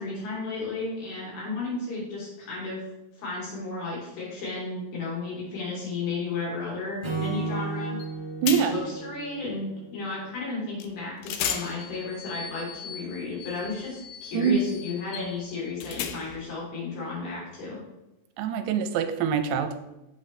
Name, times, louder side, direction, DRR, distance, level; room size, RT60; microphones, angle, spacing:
voice 1, 0.0-2.8 3.2-8.0 8.7-17.8, left 3 dB, 65° left, -5 dB, 5.0 m, -33 dB
Acoustic guitar / Strum, 7.0-10.3, right 4 dB, 20° right, 0.6 m, -34 dB
sound 1, 8.0-8.1 8.5-9.0 10.8-10.9 11.2-16.5, left 9 dB, 85° left, 2.0 m, -36 dB
voice 2, 8.4-8.8 14.3-14.6 18.4-19.8, right 8 dB, 80° right, 8 dB, 2.6 m, -24 dB
8.1 x 7.8 x 3.2 m, 0.96 s
omnidirectional pair, 4.8 m